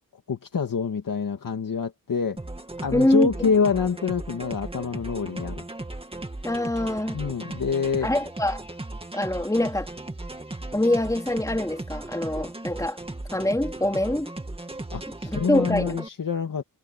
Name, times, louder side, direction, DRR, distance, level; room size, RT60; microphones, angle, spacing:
voice 1, 0.3-2.4 2.8-5.6 7.1-8.1 14.9-16.6, left 5 dB, 70° left, 2.2 m, -26 dB
sound 1, 2.4-16.1, right 2 dB, 15° right, 2.2 m, -36 dB
voice 2, 2.9-3.5 6.4-7.2 8.0-8.6 9.1-9.9 10.7-13.0 13.3-14.3 15.2-16.0, left 1 dB, 10° left, 4.0 m, -24 dB
wide cardioid pair, 145°, 35 cm